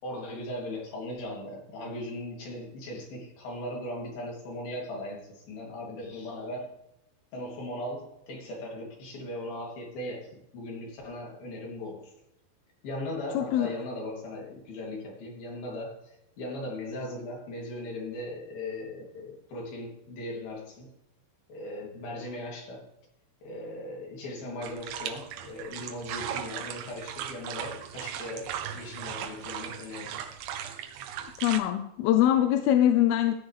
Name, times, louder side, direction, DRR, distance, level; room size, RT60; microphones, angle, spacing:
voice 1, 0.0-6.7 7.3-12.1 12.8-20.9 21.5-22.9 23.4-30.2, left 1 dB, 65° left, -2 dB, 4.8 m, -38 dB
voice 2, 13.4-13.7 31.4-33.3, left 11 dB, 80° left, 8 dB, 2.5 m, -23 dB
sound 1, 24.6-31.6, right 9 dB, 85° right, 3.1 m, -38 dB
14.5 x 10.0 x 3.4 m, 0.87 s
omnidirectional pair, 4.7 m